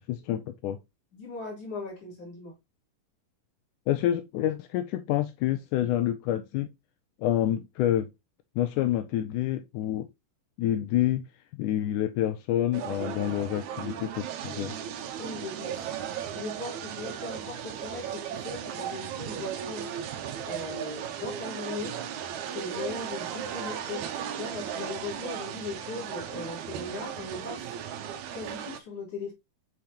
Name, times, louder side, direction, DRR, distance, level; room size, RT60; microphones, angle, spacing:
voice 1, 0.1-0.8 3.9-6.7 7.2-8.1 8.6-10.1 10.6-11.3 11.6-14.7, left 12 dB, 80° left, 2.0 m, -28 dB
voice 2, 1.1-2.5 15.2-19.9 20.4-22.0 22.5-27.7 28.3-29.3, left 3 dB, 45° left, 4.6 m, -39 dB
sound 1, 12.7-28.8, right 9 dB, 70° right, 1.9 m, -36 dB
8.5 x 4.7 x 2.9 m
omnidirectional pair, 4.0 m